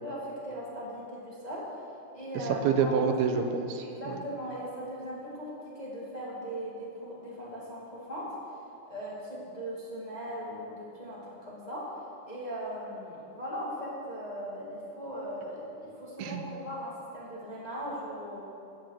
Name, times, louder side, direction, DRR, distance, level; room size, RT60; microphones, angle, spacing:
voice 1, 0.0-1.8 2.1-3.1 3.8-8.3 8.9-11.9 12.3-18.4, equal, 15° left, -6 dB, 1.8 m, -39 dB
voice 2, 2.6-4.2 16.2-16.4, right 6 dB, 85° right, 6 dB, 2.8 m, -27 dB
15.0 x 9.2 x 6.0 m, 2.7 s
omnidirectional pair, 4.3 m